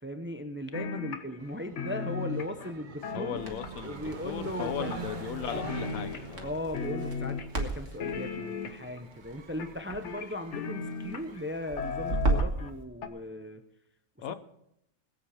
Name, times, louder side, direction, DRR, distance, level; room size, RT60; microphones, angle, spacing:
voice 1, 0.0-3.5 3.8-5.0 6.4-13.6 14.3-14.4, left 1 dB, 15° right, 8 dB, 0.5 m, -38 dB
sound 1, 0.7-1.5 1.8-4.0 4.6-5.3 5.5-6.5 6.7-7.6 8.0-9.0 9.6-11.4 11.8-12.7 13.0-13.1, left 5 dB, 60° left, 1.3 m, -36 dB
sound 2, 1.4-12.4, right 4 dB, 40° right, 0.9 m, -45 dB
voice 2, 3.1-6.6 14.2-14.3, left 9 dB, 85° left, 13 dB, 1.2 m, -37 dB
Crackle, 3.3-12.7, right 2 dB, 60° right, 2.0 m, -36 dB
21.0 x 8.2 x 5.0 m, 0.79 s
omnidirectional pair, 1.4 m